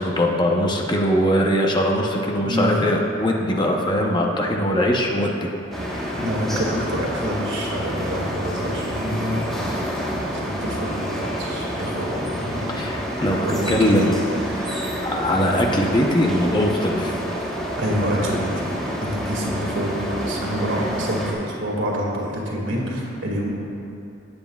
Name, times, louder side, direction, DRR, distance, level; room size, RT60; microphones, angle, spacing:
voice 1, 0.0-6.2 12.7-14.1 15.0-17.2, equal, 25° left, 0 dB, 0.8 m, -21 dB
voice 2, 2.4-2.9 6.1-9.5 10.3-12.9 13.4-14.1 14.4-15.0 16.2-16.3 17.4-18.7 19.0-23.5, equal, 70° right, -3 dB, 2.0 m, -27 dB
sound 1, 5.7-21.3, equal, ahead, 1.2 m, -28 dB
17.5 x 7.8 x 2.3 m, 2.8 s
head